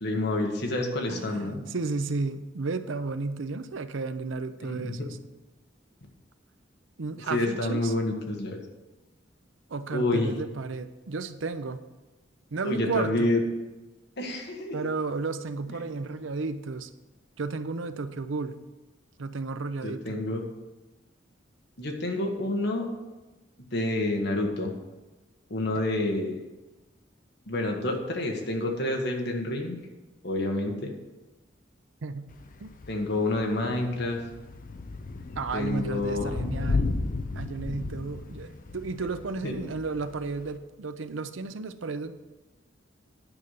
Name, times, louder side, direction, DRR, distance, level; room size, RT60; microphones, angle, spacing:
voice 1, 0.0-1.6 4.6-5.1 7.3-8.6 9.9-10.3 12.6-13.4 14.2-14.8 19.8-20.4 21.8-22.9 23.7-24.7 25.5-26.4 27.5-29.8 30.2-30.9 32.9-34.2 35.5-36.4 39.4-39.5, left 2 dB, 60° left, 2 dB, 1.5 m, -28 dB
voice 2, 1.1-5.2 7.0-7.9 9.7-11.8 12.5-13.4 14.7-16.9 17.4-18.6 19.2-20.2 25.7-25.8 32.0-32.3 32.6-32.7 35.4-36.9 37.3-42.1, right 4 dB, 85° right, 11 dB, 0.6 m, -33 dB
Thunder / Rain, 32.3-40.6, left 3 dB, 45° left, 0.7 m, -34 dB
9.7 x 5.5 x 6.5 m, 1.1 s
head